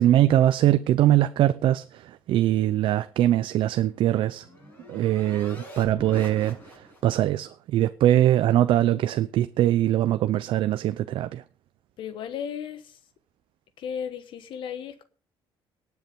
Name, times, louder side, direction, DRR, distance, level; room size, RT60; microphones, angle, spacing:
voice 1, 0.0-4.4 4.9-11.4, right 13 dB, 65° right, 0.6 m, -22 dB
sound 1, 3.7-7.2, equal, 20° left, 6.6 m, -43 dB
voice 2, 12.0-13.0 13.8-15.0, left 8 dB, 65° left, 1.2 m, -35 dB
18.5 x 7.0 x 5.3 m
cardioid pair, 160°, 9 cm